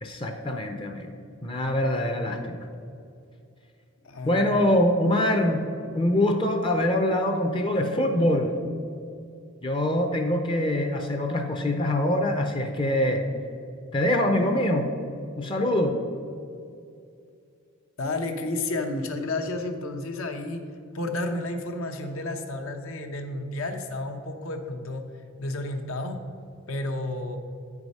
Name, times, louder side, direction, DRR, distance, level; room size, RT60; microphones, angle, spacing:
voice 1, 0.0-1.1 1.4-2.7 4.2-5.6 5.9-8.5 9.6-13.2 13.9-14.9 15.4-16.0, left 1 dB, 25° left, 5 dB, 0.5 m, -24 dB
voice 2, 4.0-4.6 18.0-20.6 20.9-25.0 25.4-26.2 26.7-27.4, left 2 dB, 75° left, 5 dB, 0.8 m, -31 dB
8.4 x 4.8 x 5.3 m, 2.5 s
head